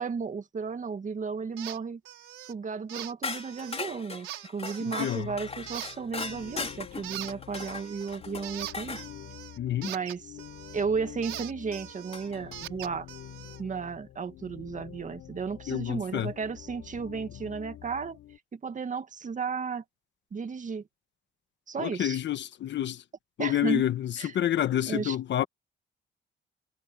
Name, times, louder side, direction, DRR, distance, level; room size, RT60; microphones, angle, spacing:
voice 1, 0.0-2.0 2.4-9.0 9.8-10.4 10.7-13.1 13.6-18.2 18.5-19.8 20.3-20.8 21.7-22.2 23.4-23.8 24.2-24.3 24.9-25.2, right 5 dB, 40° right, 2.1 m, -34 dB
sound 1, 1.6-1.8 2.1-2.5 2.9-3.8 4.2-5.2 5.7-6.8 7.0-10.9 11.2-13.6, right 13 dB, 85° right, 5.2 m, -42 dB
sound 2, 3.2-9.1 11.1-11.2 12.1-12.6, left 4 dB, 30° left, 4.4 m, -39 dB
voice 2, 4.8-5.3 9.6-9.9 15.7-16.3 21.8-23.0 23.4-25.5, left 11 dB, 65° left, 1.2 m, -28 dB
sound 3, 5.2-18.4, left 13 dB, 80° left, 5.6 m, -48 dB
cardioid pair, 90°, 20 cm